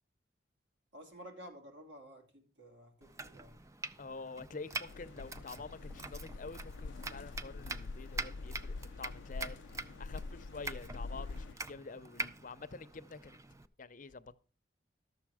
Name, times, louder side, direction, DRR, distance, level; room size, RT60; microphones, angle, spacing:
voice 1, 0.9-3.6, equal, 90° right, 2.8 m, -52 dB
Domestic sounds home sounds, 3.0-13.7, right 2 dB, 15° right, 0.5 m, -45 dB
voice 2, 4.0-9.6 10.0-13.4 13.8-14.4, left 4 dB, 45° left, 0.6 m, -47 dB
sound 1, 4.9-11.5, left 3 dB, 85° left, 0.4 m, -45 dB
13.0 x 6.9 x 4.8 m
head